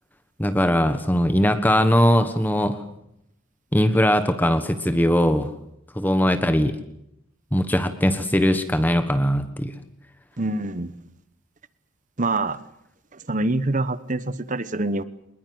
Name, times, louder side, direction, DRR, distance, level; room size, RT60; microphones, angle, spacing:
voice 1, 0.4-2.8 3.7-5.5 5.9-6.7 7.5-9.7, equal, 10° left, 9 dB, 1.3 m, -20 dB
voice 2, 10.4-10.9 12.2-12.6 13.1-15.0, right 2 dB, 40° right, 15 dB, 1.1 m, -25 dB
24.5 x 21.0 x 7.9 m, 0.79 s
head